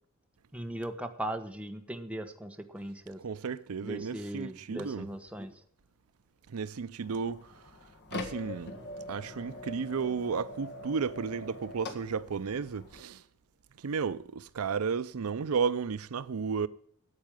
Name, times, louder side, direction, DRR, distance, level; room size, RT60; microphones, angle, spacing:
voice 1, 0.5-3.2 3.8-5.6, right 1 dB, 5° right, 1.2 m, -38 dB
voice 2, 3.2-5.1 6.5-7.6 8.1-8.7 9.1-13.2 13.8-16.7, right 5 dB, 75° right, 0.5 m, -33 dB
sound 1, 7.0-13.0, left 2 dB, 50° left, 1.9 m, -43 dB
9.7 x 8.3 x 9.1 m
head